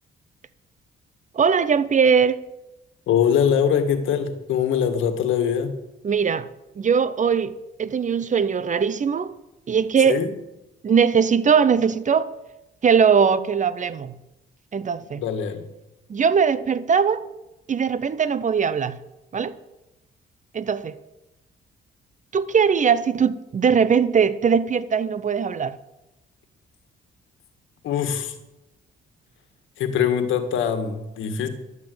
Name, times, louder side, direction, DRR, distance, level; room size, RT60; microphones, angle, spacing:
voice 1, 1.3-2.4 6.0-6.5 6.8-9.3 9.7-10.2 10.8-12.3 12.8-14.1 14.7-15.2 16.1-17.3 17.7-19.0 19.3-19.6 20.5-21.0 22.3-25.8, right 6 dB, 40° right, 0.8 m, -20 dB
voice 2, 3.1-5.7 10.1-10.3 15.2-15.6 27.8-28.4 29.8-31.5, left 8 dB, 85° left, 1.7 m, -22 dB
12.0 x 8.7 x 7.7 m
cardioid pair, 90°, 20 cm